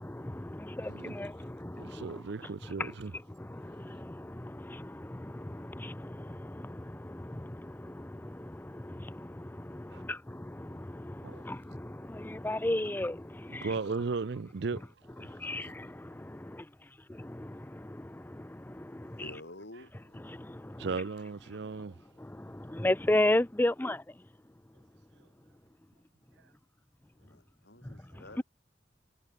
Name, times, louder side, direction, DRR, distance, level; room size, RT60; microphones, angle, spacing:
voice 1, 0.0-14.0 15.2-16.7 17.1-19.4 19.9-21.0 21.5-21.8 22.2-25.6 27.8-28.4, left 1 dB, 10° left, 0.6 m, -36 dB
voice 2, 1.7-3.1 9.9-10.0 11.2-11.4 13.6-15.4 20.8-22.0 28.1-28.2, right 4 dB, 70° right, 0.6 m, -36 dB
voice 3, 19.0-19.9 27.2-28.4, left 1 dB, 75° left, 4.5 m, -49 dB
head